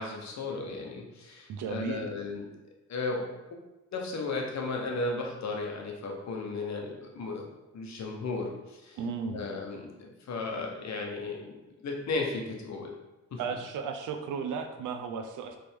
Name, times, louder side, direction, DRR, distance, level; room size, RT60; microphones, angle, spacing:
voice 1, 0.0-2.5 2.9-3.3 3.9-7.4 7.7-9.0 9.3-11.5 11.8-12.9 13.3-13.4, left 3 dB, 60° left, 1 dB, 1.0 m, -35 dB
voice 2, 1.5-2.0 9.0-9.4 13.4-15.6, right 6 dB, 75° right, 6 dB, 0.6 m, -34 dB
4.3 x 3.4 x 3.5 m, 1.0 s
supercardioid pair, 65°, 31 cm